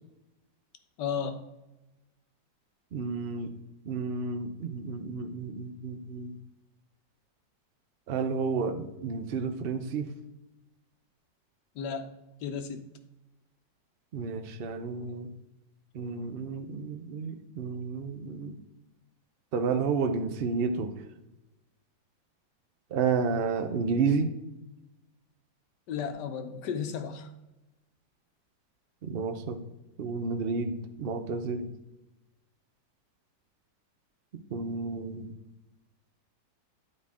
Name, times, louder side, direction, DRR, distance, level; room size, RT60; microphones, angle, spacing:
voice 1, 1.0-1.4 11.7-12.1 12.4-12.9 16.7-16.8 25.9-27.3, left 7 dB, 75° left, 8 dB, 1.4 m, -34 dB
voice 2, 2.9-3.5 3.9-6.3 8.1-10.1 14.1-15.3 15.9-18.6 19.5-20.9 22.9-24.3 29.0-29.6 30.0-31.7 34.5-35.3, right 5 dB, 75° right, 6 dB, 0.5 m, -31 dB
10.5 x 4.4 x 3.5 m, 0.97 s
omnidirectional pair, 1.9 m